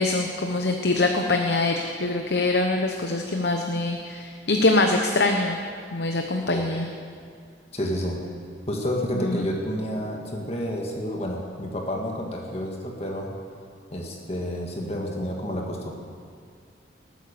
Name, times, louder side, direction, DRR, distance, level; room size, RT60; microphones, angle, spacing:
voice 1, 0.0-5.6 5.9-6.9 9.1-9.5, left 2 dB, 60° left, 3 dB, 0.9 m, -24 dB
voice 2, 7.7-8.2 8.7-13.4 13.9-15.9, equal, 35° left, 0 dB, 1.8 m, -30 dB
19.5 x 9.3 x 6.8 m, 2.3 s
head